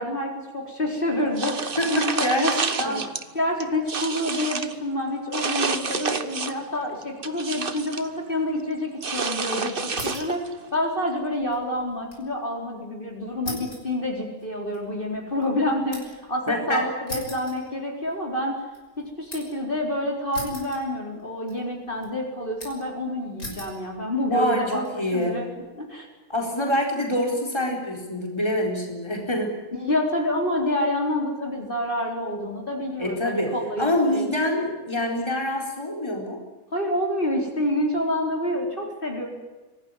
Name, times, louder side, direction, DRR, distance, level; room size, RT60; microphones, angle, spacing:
voice 1, 0.0-3.0 3.3-10.4 10.7-18.6 19.0-25.5 25.8-26.1 29.7-34.2 36.7-39.3, left 1 dB, 35° left, 0 dB, 4.3 m, -28 dB
sound 1, 1.4-3.2 3.6-4.7 5.3-6.7 7.0-8.1 9.0-10.5, right 4 dB, 40° right, 1.4 m, -29 dB
voice 2, 1.8-3.0 16.5-16.9 24.3-25.4 26.3-29.6 33.0-36.4, left 1 dB, 20° left, 1 dB, 4.3 m, -26 dB
sound 2, 9.9-10.4 10.8-12.3 12.6-12.7 13.4-16.3 17.1-18.2 18.6-19.6 20.3-21.2 21.5-22.1 22.6-23.0 23.4-23.8 24.5-24.9, left 1 dB, 85° left, 6.6 m, -39 dB
25.0 x 18.0 x 9.9 m, 1.2 s
omnidirectional pair, 1.5 m